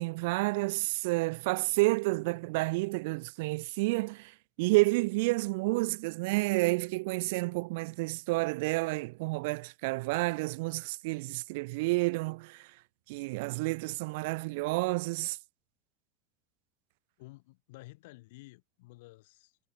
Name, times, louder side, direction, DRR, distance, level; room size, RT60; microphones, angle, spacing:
voice 1, 0.0-12.7 13.1-15.4, right 25 dB, 60° right, 0.7 m, -30 dB
voice 2, 17.2-19.6, left 21 dB, 65° left, 7.9 m, -52 dB
supercardioid pair, 170°, 0 cm